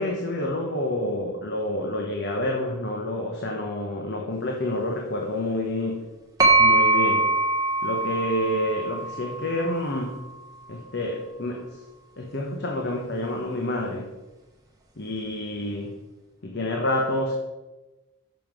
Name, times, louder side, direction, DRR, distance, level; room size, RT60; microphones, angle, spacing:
voice 1, 0.0-6.0 6.6-7.3 7.8-10.2 10.7-11.7 12.2-14.1 15.0-15.9 16.4-17.3, left 1 dB, 50° left, 1 dB, 1.0 m, -28 dB
sound 1, 6.4-10.2, right 2 dB, 15° right, 1.2 m, -23 dB
7.1 x 5.7 x 6.1 m, 1.1 s
head